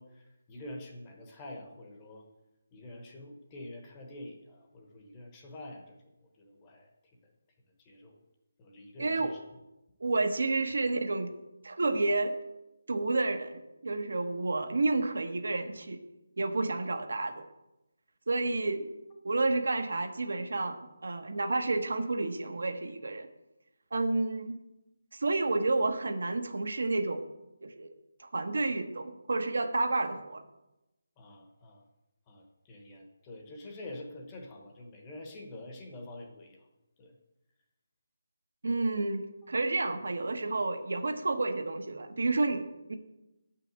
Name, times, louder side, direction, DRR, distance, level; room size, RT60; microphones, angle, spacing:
voice 1, 0.0-2.2 2.7-6.0 6.2-6.9 7.8-8.2 8.6-9.4 10.6-10.7 31.2-31.8 32.3-36.7 37.0-37.1, left 1 dB, 10° left, 1 dB, 0.9 m, -47 dB
voice 2, 9.0-9.4 10.0-11.3 11.6-12.4 12.9-16.0 16.4-17.4 18.3-18.9 19.2-23.3 23.9-24.6 25.1-27.2 27.6-27.9 28.2-30.4 38.6-43.0, right 2 dB, 65° right, 7 dB, 1.0 m, -30 dB
8.3 x 5.7 x 7.9 m, 0.95 s
hypercardioid pair, 180°, 0 cm